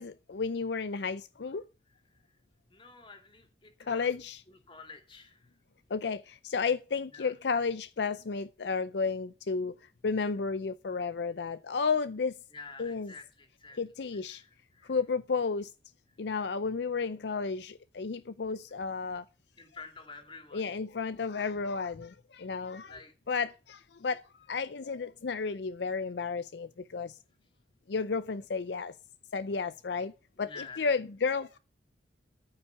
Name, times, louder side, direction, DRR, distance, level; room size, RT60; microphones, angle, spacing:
voice 1, 0.0-1.6 3.9-4.4 5.9-9.7 10.0-12.3 12.8-13.1 13.8-14.4 14.9-15.7 16.2-19.2 20.5-22.9 23.3-24.2 24.5-27.2 27.9-28.9 29.3-30.1 30.4-31.6, left 5 dB, 65° left, 0.5 m, -32 dB
voice 2, 2.7-4.1 4.5-5.5 7.1-7.3 12.5-13.8 14.1-15.0 19.6-20.7 22.8-23.1 30.4-30.9, left 4 dB, 30° left, 2.5 m, -49 dB
14.0 x 5.7 x 6.9 m
head